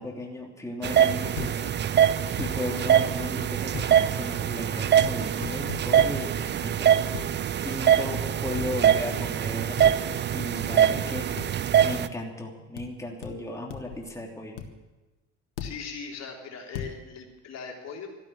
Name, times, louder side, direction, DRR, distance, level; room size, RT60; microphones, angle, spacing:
voice 1, 0.0-1.7 2.4-6.9 7.6-11.3 11.8-14.6, left 1 dB, 10° left, -1 dB, 3.2 m, -36 dB
sound 1, 0.8-12.1, right 9 dB, 30° right, 0.7 m, -23 dB
sound 2, 1.4-1.5 2.4-2.5 3.7-3.9 5.0-5.2 5.4-6.1 7.1-7.3 8.6-8.7 9.8-10.0 10.6-10.7 11.4-11.5 12.8-12.9 13.2-13.3 13.7-14.0 14.6-14.7 15.6-15.8 16.7-16.9, left 8 dB, 70° left, 1.7 m, -36 dB
voice 2, 15.6-18.1, left 5 dB, 45° left, 0 dB, 3.5 m, -39 dB
13.0 x 12.0 x 9.1 m, 1.1 s
hypercardioid pair, 65°, 37 cm